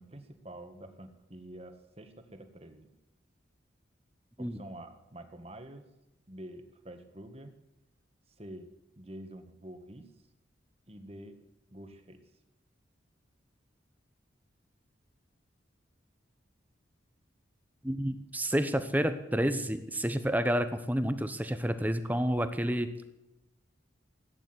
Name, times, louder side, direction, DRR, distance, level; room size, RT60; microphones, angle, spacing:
voice 1, 0.0-2.9 4.4-5.9 6.3-7.6 8.4-8.7 9.0-10.1 10.9-11.4 11.7-12.2, right 1 dB, 30° right, 7 dB, 1.7 m, -47 dB
voice 2, 17.8-22.9, equal, 10° right, 10 dB, 0.9 m, -29 dB
16.5 x 10.0 x 8.0 m, 0.94 s
head